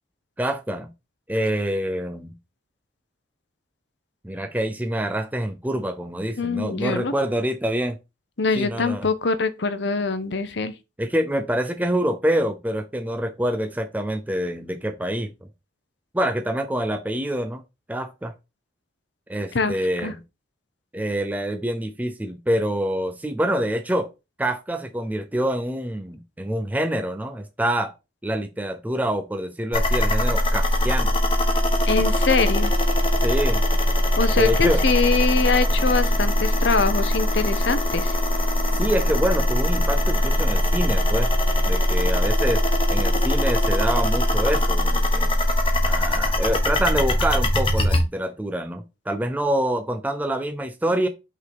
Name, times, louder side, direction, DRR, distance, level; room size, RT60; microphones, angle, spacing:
voice 1, 0.4-0.9 1.3-2.4 4.2-8.0 8.6-9.1 11.0-15.5 16.1-17.6 17.9-18.3 19.3-20.2 20.9-24.1 24.4-27.9 28.2-31.1 33.2-33.6 34.4-34.8 38.8-41.3 41.7-42.6 42.9-45.4 45.8-51.1, right 1 dB, 10° right, 0.5 m, -26 dB
voice 2, 6.4-7.1 8.4-10.7 19.5-19.8 20.0-20.1 31.9-32.7 34.2-38.2, left 4 dB, 65° left, 0.7 m, -23 dB
sound 1, 29.7-48.0, left 1 dB, 30° left, 1.2 m, -21 dB
5.8 x 3.8 x 4.6 m
head